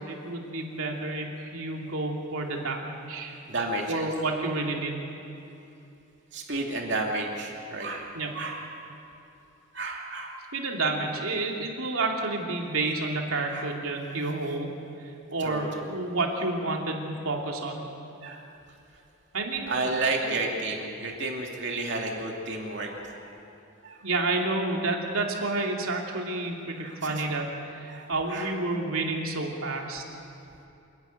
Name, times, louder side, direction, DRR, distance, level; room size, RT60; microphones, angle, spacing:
voice 1, 0.0-3.4 3.9-5.0 8.1-8.4 10.5-14.7 15.3-17.8 19.3-19.9 20.2-20.3 24.0-30.0, right 2 dB, 85° right, 0 dB, 2.7 m, -30 dB
voice 2, 3.5-4.1 6.3-8.6 9.7-10.4 13.5-13.7 15.4-15.9 18.2-18.5 19.7-23.4 23.8-24.0 26.8-27.2 27.9-28.5, right 2 dB, 55° right, 0 dB, 2.7 m, -32 dB
28.0 x 11.0 x 9.4 m, 2.8 s
head